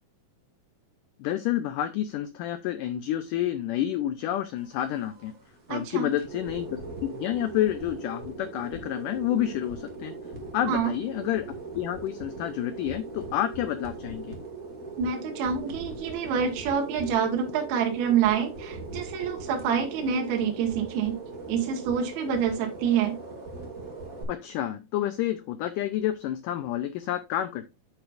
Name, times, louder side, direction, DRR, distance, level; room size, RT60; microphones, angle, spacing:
voice 1, 1.2-5.3 5.7-10.1 10.5-11.5 11.7-14.4 24.3-27.7, left 12 dB, 85° left, 11 dB, 1.8 m, -29 dB
sound 1, 4.6-24.2, right 3 dB, 30° right, 2.0 m, -40 dB
voice 2, 5.7-6.1 10.7-10.9 15.0-21.2 21.5-23.2, right 7 dB, 75° right, 2 dB, 3.3 m, -27 dB
9.2 x 8.2 x 2.5 m, 0.24 s
omnidirectional pair, 4.5 m